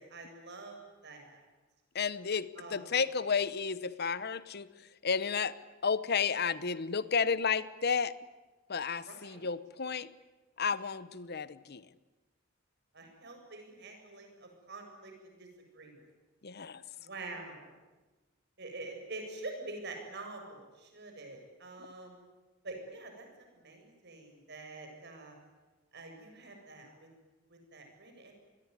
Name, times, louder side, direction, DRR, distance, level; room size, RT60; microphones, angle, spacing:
voice 1, 0.0-1.4 2.6-2.9 9.1-9.4 12.9-15.5 15.7-16.1 17.0-17.7 18.6-22.3 22.6-25.4 25.9-27.1 27.5-28.3, right 2 dB, 60° right, 3 dB, 7.8 m, -46 dB
voice 2, 1.9-4.7 5.0-8.1 8.7-10.1 10.6-11.8 16.4-16.8, left 5 dB, 55° left, 16 dB, 0.9 m, -32 dB
27.5 x 21.0 x 9.9 m, 1.2 s
head